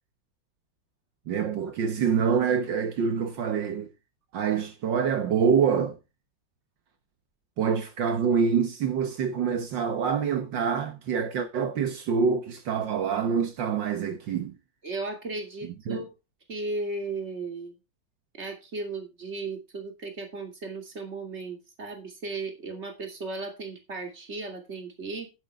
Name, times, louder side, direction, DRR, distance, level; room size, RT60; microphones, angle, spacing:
voice 1, 1.3-3.9 4.3-6.0 7.6-14.5 15.9-16.1, right 6 dB, 75° right, 1.8 m, -26 dB
voice 2, 14.8-16.1 16.5-17.8 18.4-25.3, right 3 dB, 35° right, 3.0 m, -35 dB
11.0 x 10.0 x 3.6 m
omnidirectional pair, 2.0 m